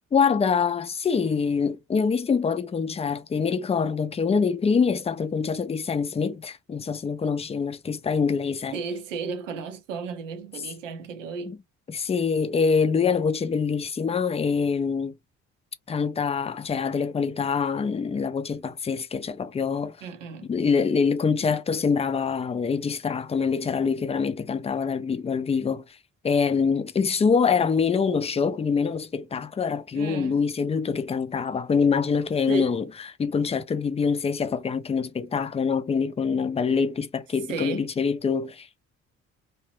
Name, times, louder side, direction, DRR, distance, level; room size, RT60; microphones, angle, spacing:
voice 1, 0.1-8.7 11.5-11.6 11.9-15.1 15.9-20.0 20.5-25.8 26.2-32.9 33.2-38.8, left 5 dB, 15° left, 0.4 m, -25 dB
voice 2, 8.7-11.6 20.0-20.5 29.9-30.4 32.5-32.8 37.5-37.9, right 5 dB, 90° right, 0.6 m, -34 dB
2.7 x 2.1 x 2.9 m
hypercardioid pair, 45°, 36 cm